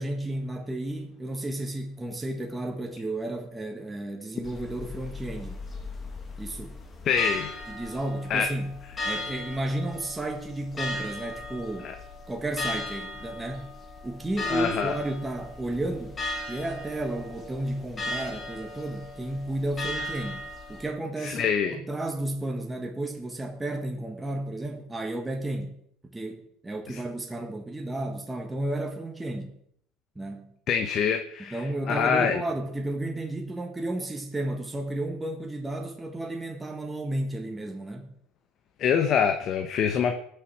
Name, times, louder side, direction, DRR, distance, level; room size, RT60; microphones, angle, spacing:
voice 1, 0.0-5.6 6.4-6.8 7.7-8.7 9.0-11.9 12.3-13.7 14.0-16.2 16.5-25.7 26.0-29.5 30.1-30.5 31.5-38.1, right 1 dB, 10° right, 1.4 m, -32 dB
sound 1, 4.4-20.9, left 2 dB, 25° left, 1.8 m, -37 dB
voice 2, 7.0-7.5 8.3-8.5 11.8-11.9 14.5-14.9 21.2-21.8 26.9-27.0 30.7-31.6 31.9-32.4 38.8-40.2, left 7 dB, 45° left, 1.0 m, -25 dB
18.5 x 6.8 x 4.7 m
cardioid pair, 125°, 0 cm